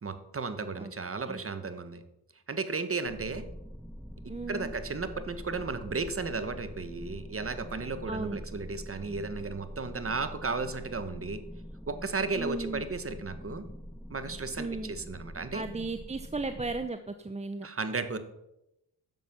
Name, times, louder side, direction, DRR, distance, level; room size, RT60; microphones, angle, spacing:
voice 1, 0.0-2.0 2.5-3.4 4.2-11.4 11.9-13.7 14.1-15.6 17.6-18.2, right 4 dB, 35° right, 10 dB, 1.5 m, -34 dB
sound 1, 3.1-16.9, equal, ahead, 0.3 m, -44 dB
voice 2, 4.3-4.7 8.1-8.4 12.3-12.8 14.6-14.9 15.5-17.7, right 3 dB, 15° right, 9 dB, 0.7 m, -35 dB
11.0 x 7.3 x 6.0 m, 0.87 s
supercardioid pair, 55°, 41 cm